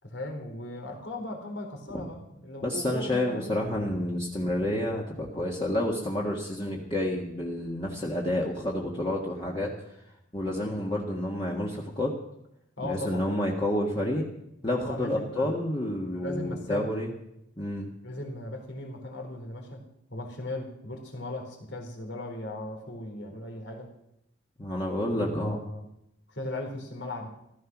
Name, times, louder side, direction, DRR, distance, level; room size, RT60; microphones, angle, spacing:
voice 1, 0.0-3.6 12.8-13.3 14.8-15.6 16.1-16.9 18.0-19.8 20.1-23.9 25.2-25.8 26.3-27.3, left 1 dB, 75° left, 2 dB, 3.8 m, -37 dB
voice 2, 2.6-9.7 10.3-12.1 12.8-14.2 14.6-17.1 17.6-17.9 24.6-25.6, left 1 dB, 25° left, -2 dB, 1.7 m, -29 dB
16.0 x 13.5 x 6.1 m, 0.80 s
head